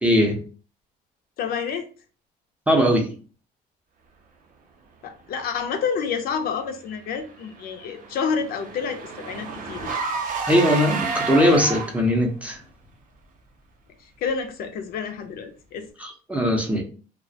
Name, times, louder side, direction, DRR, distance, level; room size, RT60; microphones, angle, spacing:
voice 1, 0.0-0.4 2.7-3.1 10.5-12.6 16.0-16.8, equal, 10° right, 0.5 m, -20 dB
voice 2, 1.4-1.9 5.0-10.0 14.2-15.9, left 6 dB, 65° left, 0.4 m, -29 dB
Car / Engine, 7.2-12.2, right 4 dB, 55° right, 0.5 m, -30 dB
2.3 x 2.0 x 2.6 m
cardioid pair, 110°, 17 cm